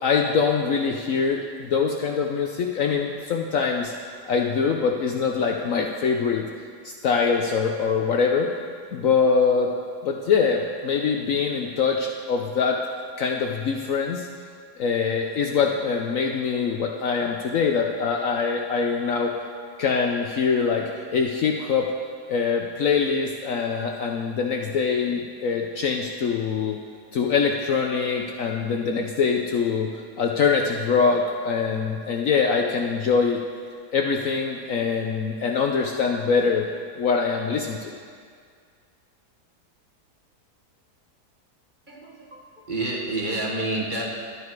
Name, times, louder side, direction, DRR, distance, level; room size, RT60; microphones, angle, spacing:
voice 1, 0.0-3.9 4.3-6.5 6.8-8.5 8.9-9.7 10.0-12.8 13.2-14.3 14.8-19.3 19.8-21.9 22.3-26.8 27.1-29.9 30.2-33.4 33.9-36.7 37.0-37.9, left 5 dB, 60° left, 2 dB, 1.0 m, -23 dB
voice 2, 41.9-44.1, right 2 dB, 30° right, -3 dB, 1.5 m, -29 dB
11.5 x 9.7 x 4.7 m, 2.1 s
omnidirectional pair, 1.8 m